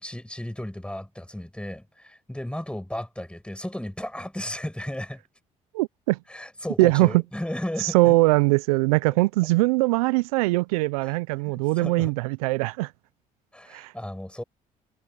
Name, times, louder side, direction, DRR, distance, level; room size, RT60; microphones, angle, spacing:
voice 1, 0.0-5.2 6.3-8.2 11.0-11.1 11.4-12.1 13.5-14.4, left 1 dB, 5° left, 7.2 m, -34 dB
voice 2, 5.7-6.2 6.8-7.2 7.8-12.9 13.7-13.9, right 22 dB, 85° right, 0.5 m, -21 dB
hypercardioid pair, 55°, 18 cm